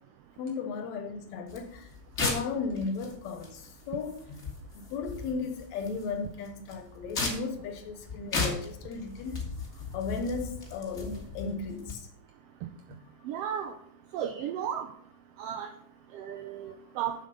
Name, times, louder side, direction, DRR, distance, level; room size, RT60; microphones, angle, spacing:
voice 1, 0.4-1.9 2.2-9.4 9.9-12.1 12.9-13.0, left 4 dB, 75° left, 2.1 m, -35 dB
sound 1, 1.5-11.9, left 3 dB, 30° left, 1.6 m, -37 dB
voice 2, 13.2-13.7 14.1-14.9 15.4-15.7 16.1-17.1, right 9 dB, 75° right, 1.4 m, -34 dB
7.4 x 7.3 x 5.2 m
omnidirectional pair, 3.4 m